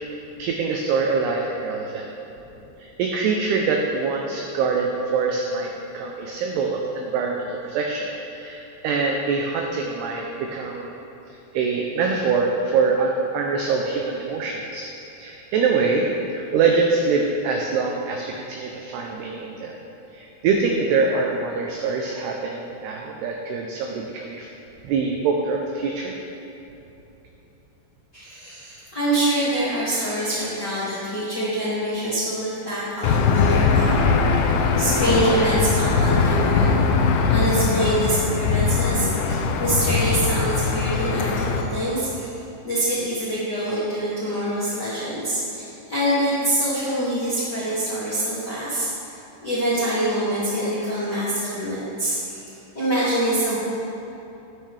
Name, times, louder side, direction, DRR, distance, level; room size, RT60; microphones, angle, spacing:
voice 1, 0.4-2.1 2.8-11.0 11.5-14.9 15.2-19.8 20.1-24.5 24.8-26.1, right 4 dB, 85° right, 1 dB, 2.3 m, -24 dB
voice 2, 28.1-34.0 34.3-36.8 37.3-42.3 42.6-48.9 49.4-52.4 52.7-53.6, right 1 dB, 40° left, -12 dB, 1.4 m, -25 dB
Aircraft / Engine, 33.0-41.6, left 5 dB, 85° left, 3.2 m, -21 dB
12.5 x 10.0 x 3.3 m, 3.0 s
omnidirectional pair, 5.5 m